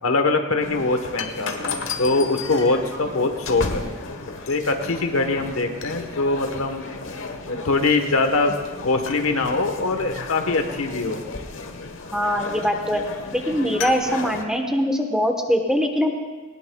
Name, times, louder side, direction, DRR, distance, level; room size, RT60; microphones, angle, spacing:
voice 1, 0.0-3.9 4.5-6.9 7.5-8.6 8.8-11.2, left 3 dB, 85° left, 6 dB, 1.2 m, -23 dB
sound 1, 0.6-14.4, left 4 dB, 65° left, 1.1 m, -33 dB
voice 2, 12.1-13.0 13.3-16.1, equal, 5° right, 3 dB, 1.1 m, -22 dB
19.0 x 19.0 x 2.3 m, 1.3 s
head